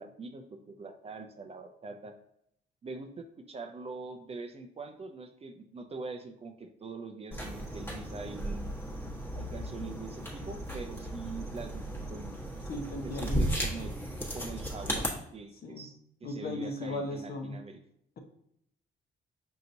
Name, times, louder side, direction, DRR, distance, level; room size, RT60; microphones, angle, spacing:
voice 1, 0.0-2.1 2.8-8.7 9.3-12.3 13.0-13.9 14.3-15.1 15.3-17.8, right 3 dB, 30° right, 5 dB, 0.4 m, -43 dB
sound 1, 7.3-15.1, equal, 10° left, 1.1 m, -35 dB
voice 2, 12.7-13.5 15.6-15.9 16.2-17.6, left 1 dB, 50° left, 3 dB, 0.8 m, -37 dB
5.4 x 2.8 x 2.6 m, 0.73 s
cardioid pair, 90°, 20 cm